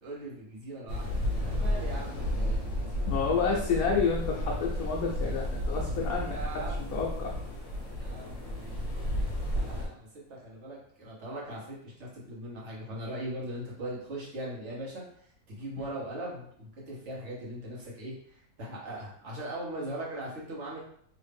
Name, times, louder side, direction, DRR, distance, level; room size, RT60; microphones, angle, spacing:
voice 1, 0.0-3.1 6.2-7.0 8.0-20.8, right 1 dB, 55° right, -4 dB, 1.4 m, -40 dB
sound 1, 0.9-9.9, equal, 45° left, 1.2 m, -32 dB
voice 2, 3.1-6.6 6.9-7.3 15.8-15.9, left 5 dB, 80° left, -2 dB, 1.1 m, -30 dB
3.3 x 2.7 x 3.4 m, 0.63 s
omnidirectional pair, 1.5 m